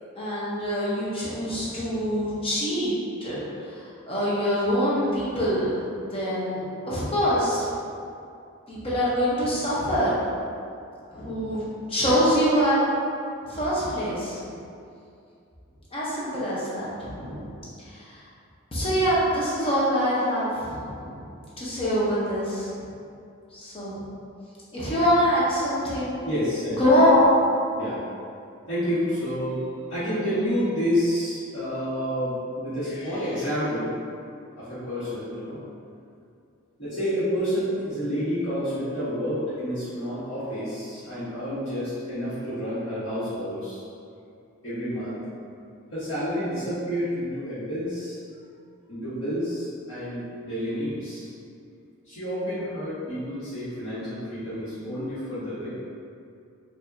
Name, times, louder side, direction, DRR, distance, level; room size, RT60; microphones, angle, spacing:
voice 1, 0.2-2.9 3.2-5.7 6.1-7.7 8.7-10.1 11.1-11.6 11.9-12.8 13.5-14.4 15.9-17.5 17.9-18.2 18.7-21.3 21.6-22.7 23.5-24.0 24.7-26.2 26.8-27.4, equal, 25° left, -8 dB, 0.9 m, -24 dB
voice 2, 26.2-27.0 27.8-28.0 28.7-29.6 29.9-33.9 34.6-35.6 36.8-43.8 44.6-45.2 45.9-48.2 48.9-51.3 52.0-55.7, equal, 60° left, -17 dB, 1.4 m, -29 dB
4.7 x 2.7 x 2.7 m, 2.5 s
head